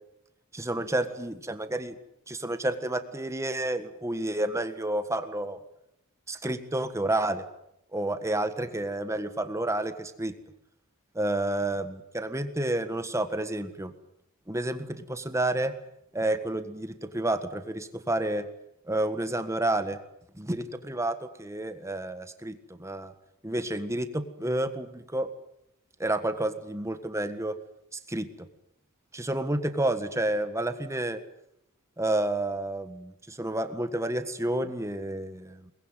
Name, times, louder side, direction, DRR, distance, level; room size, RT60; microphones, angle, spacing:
voice 1, 0.5-1.9 2.3-5.6 6.3-7.4 7.9-10.4 11.1-13.9 14.5-15.7 16.1-18.5 18.9-20.0 20.3-23.1 23.4-25.3 26.0-27.6 27.9-28.5 29.1-31.2 32.0-35.7, right 1 dB, 15° right, 10 dB, 1.6 m, -30 dB
22.5 x 20.0 x 9.1 m, 0.80 s
head